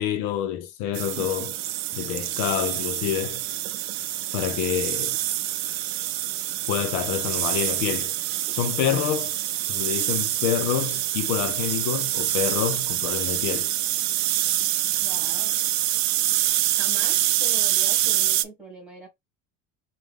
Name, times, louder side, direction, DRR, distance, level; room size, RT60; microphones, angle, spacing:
voice 1, 0.0-1.6 1.9-3.4 4.3-5.2 6.7-8.1 8.5-9.4 9.7-13.7, left 10 dB, 70° left, 0.7 m, -27 dB
sound 1, 0.9-18.4, right 14 dB, 50° right, 0.5 m, -26 dB
voice 2, 15.0-15.6 16.7-19.1, right 2 dB, 5° right, 1.6 m, -41 dB
4.9 x 2.3 x 3.6 m
cardioid pair, 180°, 36 cm